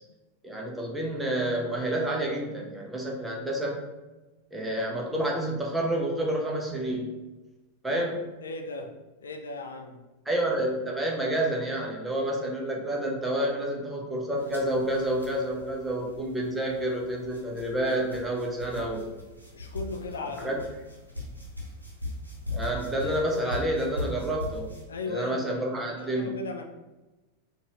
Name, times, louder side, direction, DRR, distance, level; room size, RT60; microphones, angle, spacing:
voice 1, 0.4-3.8 4.5-7.1 7.8-8.2 10.3-19.0 20.4-20.6 22.5-24.7 25.1-26.3, right 1 dB, 5° right, -1 dB, 0.7 m, -29 dB
voice 2, 8.4-8.9 9.2-10.0 19.5-20.5 23.0-23.1 23.4-23.6 24.9-26.6, left 3 dB, 65° left, 4 dB, 0.4 m, -37 dB
sound 1, 14.3-24.8, left 2 dB, 85° right, 0.8 m, -40 dB
3.9 x 2.4 x 2.9 m, 1.1 s
figure-of-eight pair, 90°, 0 cm